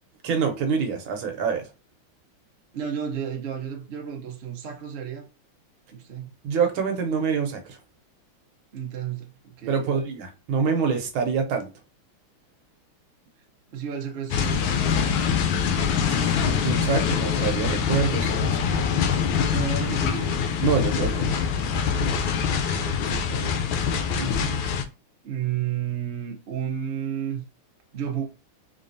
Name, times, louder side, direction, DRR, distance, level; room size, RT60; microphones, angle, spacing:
voice 1, 0.2-1.7 6.4-7.8 9.7-11.7 16.0-18.9 20.6-21.4 24.2-24.7, right 6 dB, 75° right, 1.5 m, -26 dB
voice 2, 2.7-5.3 5.9-6.3 8.7-9.9 13.7-15.2 19.5-20.5 22.5-23.8 25.2-27.4 27.9-28.3, right 8 dB, 90° right, 0.5 m, -32 dB
sound 1, 14.3-24.8, left 7 dB, 75° left, 1.3 m, -24 dB
3.8 x 3.3 x 2.6 m
omnidirectional pair, 2.4 m